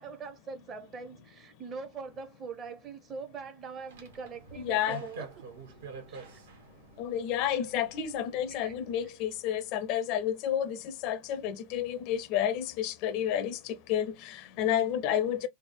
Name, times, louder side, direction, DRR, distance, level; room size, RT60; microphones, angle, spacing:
voice 1, 0.0-5.3 6.1-6.4 8.5-8.7, right 5 dB, 30° right, 0.6 m, -42 dB
sound 1, 3.9-9.1, right 4 dB, 60° right, 0.8 m, -47 dB
voice 2, 4.6-5.0 7.0-15.5, left 10 dB, 45° left, 0.4 m, -30 dB
3.4 x 2.0 x 2.9 m
figure-of-eight pair, 90°, 0 cm